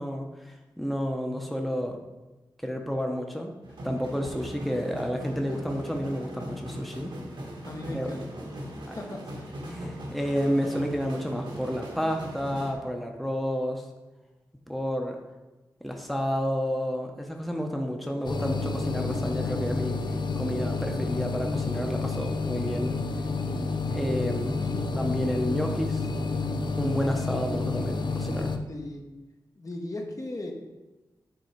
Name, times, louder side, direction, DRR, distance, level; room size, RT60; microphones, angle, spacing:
voice 1, 0.0-2.0 2.6-3.5 3.8-7.1 7.9-8.1 8.8-9.0 9.7-13.9 14.7-15.2 15.8-20.0 20.4-23.0 23.9-24.6 24.9-26.1 26.8-28.6, equal, ahead, 2 dB, 0.9 m, -30 dB
sound 1, 3.6-12.7, equal, 75° right, 1.7 m, -39 dB
voice 2, 7.6-8.2 9.0-9.2 9.5-9.7 24.6-24.9 28.7-29.0 29.6-30.5, left 1 dB, 40° left, 2 dB, 1.1 m, -37 dB
sound 2, 18.2-28.6, left 3 dB, 65° left, 0.6 m, -29 dB
7.9 x 3.1 x 4.6 m, 1.1 s
cardioid pair, 40°, 8 cm